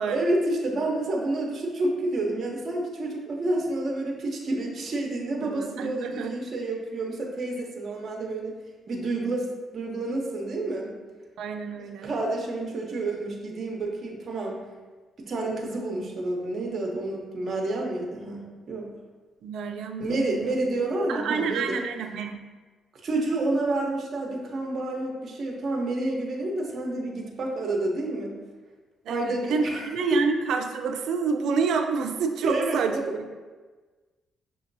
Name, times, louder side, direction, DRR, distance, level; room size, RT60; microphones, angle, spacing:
voice 1, 0.1-8.5 8.9-9.5 9.7-10.9 12.0-14.6 15.2-18.9 20.0-21.8 23.0-28.3 29.1-30.2 32.4-33.0, right 2 dB, 45° right, 0 dB, 0.8 m, -29 dB
voice 2, 5.4-6.3 11.4-12.1 19.4-20.5 21.1-22.4 29.1-33.3, right 5 dB, 75° right, 5 dB, 0.4 m, -28 dB
5.9 x 2.7 x 2.6 m, 1.3 s
cardioid pair, 90°, 0 cm